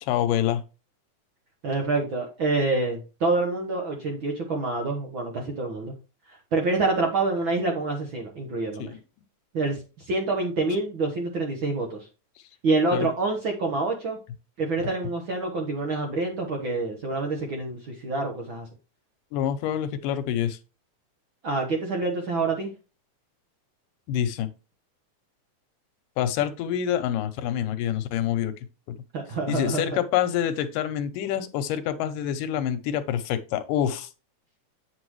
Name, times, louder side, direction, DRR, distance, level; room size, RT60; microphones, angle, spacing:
voice 1, 0.0-0.6 8.8-9.0 12.9-13.1 19.3-20.6 24.1-24.5 26.2-28.6 28.9-29.0 29.5-34.1, left 10 dB, 85° left, 2.4 m, -26 dB
voice 2, 1.6-5.9 6.5-8.9 9.5-12.0 12.6-14.2 14.6-18.7 21.4-22.7 29.1-30.0, right 3 dB, 55° right, 1.5 m, -27 dB
8.7 x 5.9 x 3.1 m
omnidirectional pair, 3.7 m